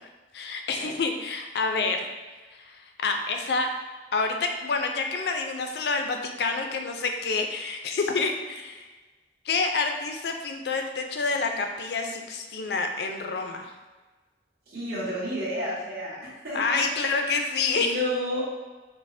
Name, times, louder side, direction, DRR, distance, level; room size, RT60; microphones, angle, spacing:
voice 1, 0.3-2.1 2.6-3.7 4.1-8.9 9.5-13.7 16.5-18.0, left 4 dB, 70° left, 4 dB, 0.4 m, -28 dB
voice 2, 14.7-16.6 17.8-18.4, equal, 60° right, -8 dB, 1.4 m, -31 dB
5.2 x 2.1 x 2.6 m, 1.3 s
head